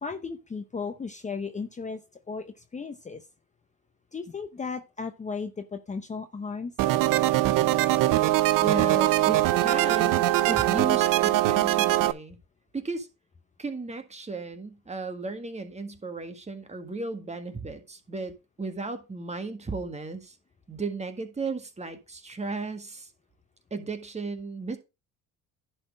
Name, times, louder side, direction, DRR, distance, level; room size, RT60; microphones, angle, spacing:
voice 1, 0.0-2.0 2.3-3.2 4.1-6.7, left 5 dB, 20° left, 0.8 m, -35 dB
sound 1, 6.8-12.1, right 16 dB, 70° right, 0.7 m, -22 dB
voice 2, 8.6-12.4 12.7-13.1 13.6-18.3 18.6-20.3 20.7-23.1 23.7-24.8, right 3 dB, 20° right, 1.7 m, -34 dB
10.5 x 4.3 x 5.0 m
supercardioid pair, 90°, 34 cm